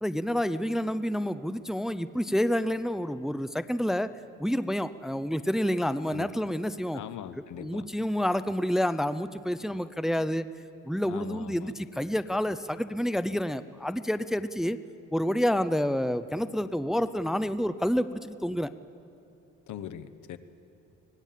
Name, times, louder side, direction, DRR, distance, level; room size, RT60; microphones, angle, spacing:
voice 1, 0.0-4.1 4.4-7.0 7.6-10.5 10.8-14.8 15.1-18.7, equal, ahead, 13 dB, 0.6 m, -28 dB
voice 2, 6.1-6.4 6.9-7.9 11.1-11.7 19.7-20.4, left 10 dB, 75° left, 12 dB, 1.2 m, -41 dB
25.0 x 19.0 x 7.5 m, 2.7 s
cardioid pair, 90°, 30 cm